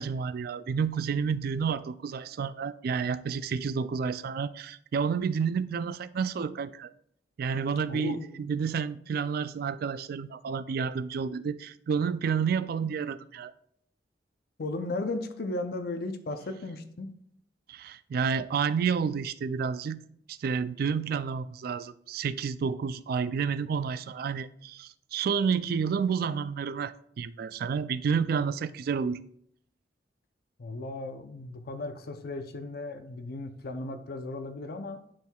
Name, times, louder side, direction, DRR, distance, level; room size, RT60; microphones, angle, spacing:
voice 1, 0.0-6.9 7.4-13.5 17.7-20.0 20.3-29.2, right 6 dB, 55° right, 0.3 m, -30 dB
voice 2, 7.9-8.4 14.6-17.1 30.6-35.0, left 2 dB, 55° left, 0.5 m, -36 dB
11.5 x 4.5 x 2.3 m
head